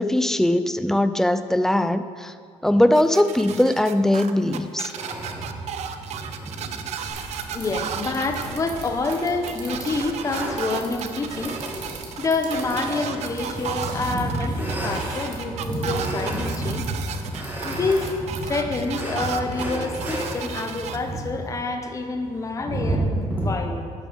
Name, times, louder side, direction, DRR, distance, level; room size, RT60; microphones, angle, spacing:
voice 1, 0.0-2.3 2.6-4.9, left 1 dB, 5° left, 11 dB, 0.4 m, -20 dB
sound 1, 2.9-21.0, right 9 dB, 60° right, 0.7 m, -34 dB
sound 2, 4.9-23.5, right 1 dB, 15° right, 2.2 m, -32 dB
sound 3, 7.1-18.7, right 3 dB, 85° right, 2.4 m, -42 dB
voice 2, 7.5-11.5 12.2-16.8 17.6-18.1 18.4-23.9, left 3 dB, 25° left, 5 dB, 1.1 m, -27 dB
11.5 x 6.8 x 6.3 m, 2.1 s
cardioid pair, 135°, 12 cm